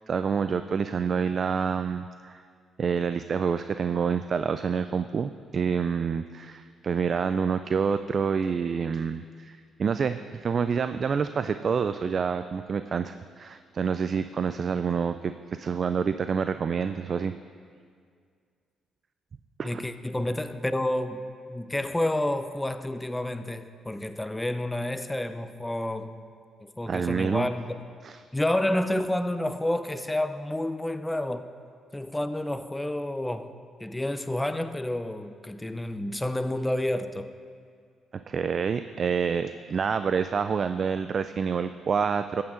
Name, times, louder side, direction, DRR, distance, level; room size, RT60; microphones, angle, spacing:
voice 1, 0.1-2.4 2.8-17.3 19.6-19.8 26.9-27.5 28.0-28.2 38.1-42.4, right 6 dB, 45° right, 0.3 m, -27 dB
voice 2, 19.6-26.2 26.8-27.9 28.3-31.5 31.9-37.3, left 1 dB, 10° left, 0.5 m, -29 dB
14.0 x 8.6 x 3.8 m
cardioid pair, 90°, 0 cm